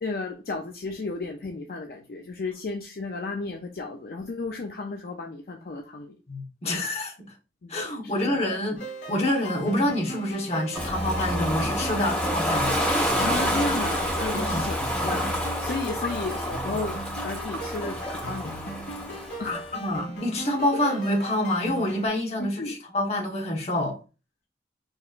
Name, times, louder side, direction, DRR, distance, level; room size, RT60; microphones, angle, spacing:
voice 1, 0.0-6.2 7.6-7.7 8.0-8.4 12.0-12.2 13.2-15.3 15.6-17.0 17.2-18.6 19.4-19.7 22.4-22.8, left 3 dB, 55° left, 0.4 m, -33 dB
voice 2, 6.3-7.1 7.7-8.8 9.1-12.8 14.3-14.7 16.1-16.2 19.5-24.0, left 1 dB, 35° left, 1.0 m, -27 dB
sound 1, 8.7-22.1, right 1 dB, 80° left, 2.2 m, -38 dB
Ocean, 10.7-19.6, equal, 5° left, 1.3 m, -28 dB
5.2 x 2.9 x 2.4 m
head